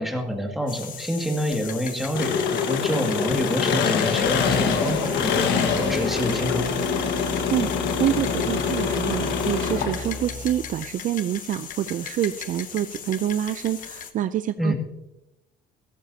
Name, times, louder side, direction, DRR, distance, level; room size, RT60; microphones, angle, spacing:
voice 1, 0.0-6.7 14.6-14.7, equal, ahead, 1 dB, 2.2 m, -27 dB
sound 1, 0.7-14.1, left 8 dB, 50° left, 1.0 m, -38 dB
Engine, 2.2-10.3, left 6 dB, 80° left, 1.5 m, -25 dB
sound 2, 4.3-10.8, right 2 dB, 25° right, 1.4 m, -35 dB
voice 2, 8.0-14.7, right 11 dB, 50° right, 12 dB, 0.4 m, -26 dB
14.0 x 13.5 x 2.8 m, 0.89 s
cardioid pair, 110°, 17 cm